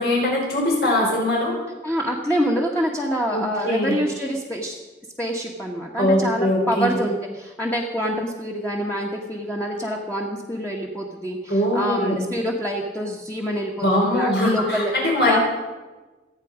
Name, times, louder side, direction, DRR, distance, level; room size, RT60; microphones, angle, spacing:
voice 1, 0.0-1.6 3.3-4.0 6.0-6.9 11.5-12.3 13.8-15.4, left 1 dB, 70° left, -1 dB, 5.0 m, -21 dB
voice 2, 1.8-4.8 5.2-14.9 15.3-15.4, equal, 10° left, -2 dB, 1.4 m, -26 dB
27.0 x 9.2 x 5.1 m, 1.2 s
head